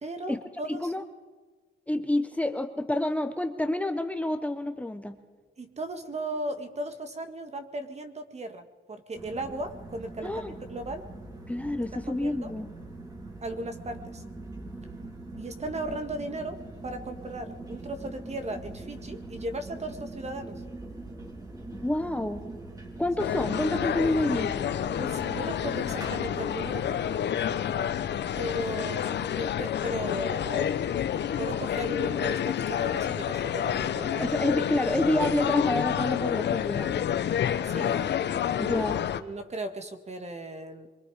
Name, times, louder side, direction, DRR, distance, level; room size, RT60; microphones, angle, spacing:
voice 1, 0.0-0.9 5.6-11.1 12.1-12.5 13.4-14.2 15.4-20.6 25.0-26.9 28.4-31.1 31.4-34.3 37.6-38.7 39.2-40.9, right 1 dB, 35° right, 8 dB, 2.1 m, -37 dB
voice 2, 0.7-1.0 1.9-5.2 10.2-10.5 11.5-12.7 21.7-22.4 23.0-24.5 34.2-37.1 38.6-39.0, left 1 dB, 5° left, 7 dB, 1.1 m, -28 dB
sound 1, 9.1-27.1, right 2 dB, 20° right, 4.7 m, -42 dB
sound 2, 23.2-39.2, left 9 dB, 60° left, 1.0 m, -29 dB
25.0 x 23.5 x 5.1 m, 1.4 s
cardioid pair, 90°, 20 cm